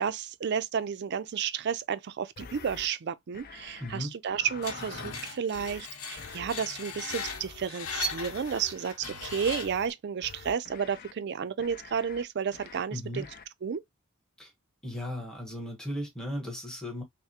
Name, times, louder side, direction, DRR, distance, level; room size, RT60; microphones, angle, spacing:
voice 1, 0.0-13.3 13.6-13.8, right 7 dB, 55° right, 0.4 m, -32 dB
sound 1, 2.4-2.9 3.3-4.0 4.3-5.2 5.5-5.9 6.2-6.5 7.1-8.8 9.2-9.9 10.2-11.1 11.6-12.2 12.5-12.8 13.1-13.4, left 5 dB, 45° left, 0.5 m, -47 dB
voice 2, 3.8-4.1 12.9-13.2 14.4-14.5 14.8-17.0, left 1 dB, 5° left, 1.0 m, -36 dB
Screech, 4.6-9.9, left 3 dB, 75° left, 0.9 m, -38 dB
5.6 x 2.1 x 2.8 m
head